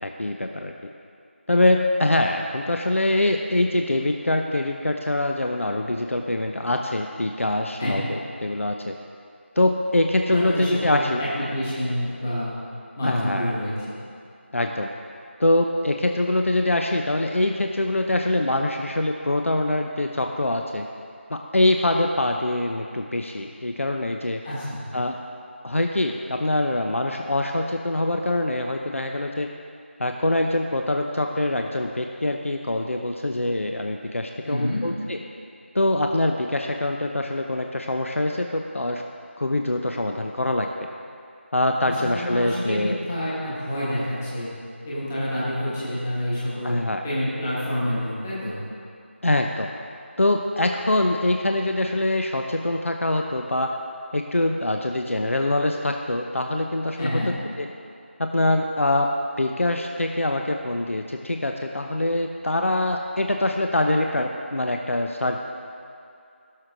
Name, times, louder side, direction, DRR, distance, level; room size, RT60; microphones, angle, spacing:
voice 1, 0.0-0.7 1.5-8.9 9.6-11.2 13.0-13.5 14.5-14.9 15.4-20.9 21.3-24.4 24.9-25.2 25.6-29.5 30.0-35.2 35.7-39.0 39.4-40.7 41.5-43.0 46.6-47.0 49.2-49.7 50.2-53.8 54.1-57.7 58.2-65.4, left 1 dB, 85° left, 3 dB, 0.8 m, -24 dB
voice 2, 10.2-12.5 13.0-14.0 24.4-24.8 34.4-34.8 41.8-44.5 44.8-46.8 47.0-48.6 57.0-57.3, equal, 10° left, -10 dB, 1.3 m, -28 dB
17.0 x 6.5 x 3.8 m, 2.5 s
figure-of-eight pair, 175°, 7 cm